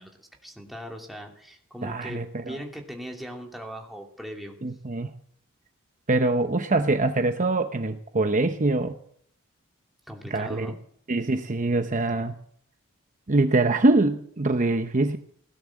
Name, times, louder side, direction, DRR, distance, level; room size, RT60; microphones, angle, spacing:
voice 1, 0.0-4.5 10.1-10.8, equal, ahead, 1 dB, 2.7 m, -39 dB
voice 2, 1.8-2.6 4.6-5.1 6.1-9.0 10.3-10.7 11.1-12.3 13.3-15.2, right 2 dB, 40° right, 8 dB, 0.8 m, -24 dB
17.5 x 11.5 x 7.3 m, 0.65 s
head